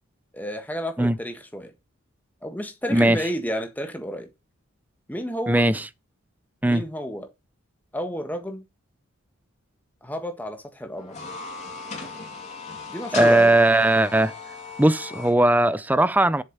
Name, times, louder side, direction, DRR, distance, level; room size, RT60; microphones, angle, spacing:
voice 1, 0.3-1.7 2.4-4.3 5.1-5.7 6.6-7.3 7.9-8.6 10.0-11.2 12.9-13.5, equal, 10° left, 1.6 m, -31 dB
voice 2, 5.5-5.9 6.6-6.8 13.1-14.3 14.8-16.4, right 1 dB, 10° right, 0.5 m, -18 dB
sound 1, 11.0-15.3, left 4 dB, 35° left, 3.2 m, -37 dB
8.0 x 6.8 x 5.5 m
head